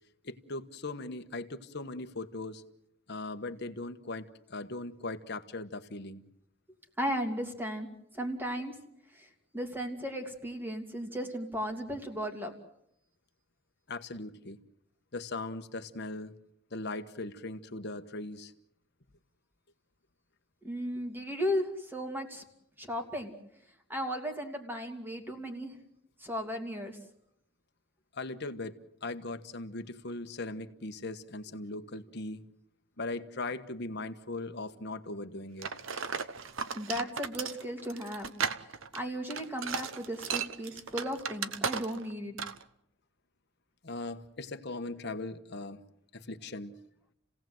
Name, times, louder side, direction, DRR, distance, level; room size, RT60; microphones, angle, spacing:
voice 1, 0.2-2.6 3.1-6.2 13.9-14.6 15.1-16.4 16.7-18.5 28.1-32.4 33.0-35.7 43.8-45.8 46.1-46.8, left 2 dB, 50° left, 8 dB, 1.3 m, -39 dB
voice 2, 7.0-7.9 8.1-8.7 9.1-9.3 9.5-12.5 20.6-22.4 22.8-23.3 23.9-25.7 26.2-27.0 36.7-38.3 38.9-42.4, equal, 10° right, 4 dB, 2.7 m, -35 dB
sound 1, 35.6-42.1 42.4-42.6, right 6 dB, 70° right, 1.0 m, -35 dB
30.0 x 17.0 x 7.8 m, 0.79 s
head